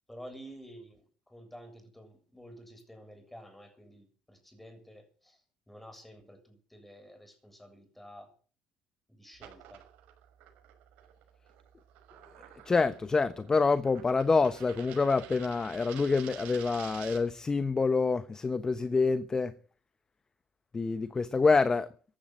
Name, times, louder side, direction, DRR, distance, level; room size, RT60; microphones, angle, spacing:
voice 1, 0.1-5.4 5.7-8.3 9.1-9.8, equal, 5° left, 7.4 m, -51 dB
sound 1, 9.3-17.4, right 10 dB, 75° right, 5.9 m, -50 dB
voice 2, 12.6-19.5 20.7-21.9, left 4 dB, 25° left, 1.1 m, -27 dB
15.5 x 12.0 x 7.8 m
supercardioid pair, 95°, 3 cm